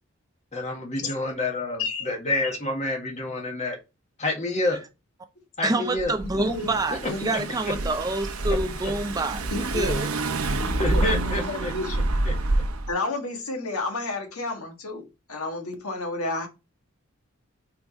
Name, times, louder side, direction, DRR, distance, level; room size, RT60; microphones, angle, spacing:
voice 1, 0.5-3.8 4.2-4.8 5.6-6.1 7.3-7.4 8.8-8.9 10.8-11.7 12.2-12.3, left 2 dB, 30° left, 1.6 m, -28 dB
voice 2, 5.6-9.4 9.7-10.1 10.4-10.6, right 2 dB, 15° right, 0.5 m, -27 dB
Car / Engine, 6.0-12.9, right 2 dB, 80° right, 0.9 m, -28 dB
voice 3, 6.4-6.7 7.1-7.5 9.5-10.0 10.8-12.1 12.9-16.5, left 2 dB, 85° left, 1.7 m, -31 dB
4.9 x 4.8 x 4.2 m
head